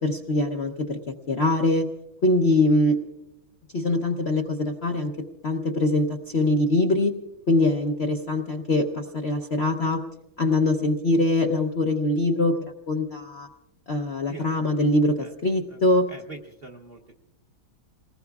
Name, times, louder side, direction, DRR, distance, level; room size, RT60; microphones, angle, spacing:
voice 1, 0.0-1.0 1.3-1.9 2.2-3.0 3.7-5.1 5.4-7.1 7.5-10.0 10.4-12.6 12.9-13.5 13.9-16.1, left 2 dB, 50° left, 2 dB, 0.7 m, -23 dB
voice 2, 16.1-17.2, right 3 dB, 45° right, 1 dB, 0.8 m, -43 dB
28.5 x 19.5 x 2.4 m, 0.97 s
omnidirectional pair, 2.1 m